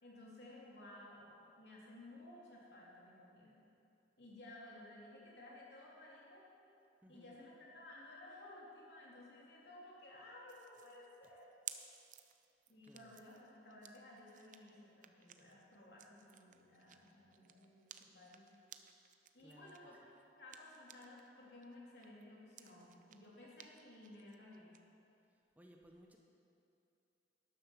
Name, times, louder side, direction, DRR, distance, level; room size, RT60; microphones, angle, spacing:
voice 1, 0.0-1.3 1.6-3.6 4.2-6.4 7.1-11.5 12.7-18.5 19.3-20.0 20.4-24.7, left 1 dB, 70° left, -5 dB, 3.4 m, -56 dB
voice 2, 7.0-7.4 11.2-11.3 12.8-13.2 19.4-19.7 25.3-26.2, equal, 10° right, 1 dB, 0.8 m, -62 dB
sound 1, 10.5-21.3 21.6-24.8, right 10 dB, 45° right, 0.6 m, -57 dB
12.5 x 10.5 x 6.1 m, 2.7 s
head